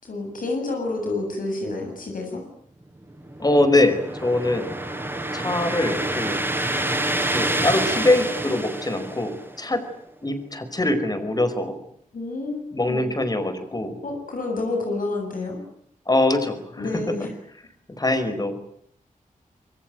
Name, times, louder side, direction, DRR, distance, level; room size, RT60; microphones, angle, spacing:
voice 1, 0.0-2.4 12.1-13.1 14.0-15.6 16.8-17.3, left 2 dB, 80° left, 2 dB, 7.5 m, -29 dB
sound 1, 3.2-9.7, right 1 dB, 15° right, 6.2 m, -27 dB
voice 2, 3.4-4.7 5.3-6.4 7.3-9.8 10.2-11.8 12.7-14.0 16.1-17.0 18.0-18.6, left 2 dB, 30° left, 10 dB, 5.1 m, -23 dB
25.5 x 23.5 x 9.3 m, 0.66 s
wide cardioid pair, 105°, 14 cm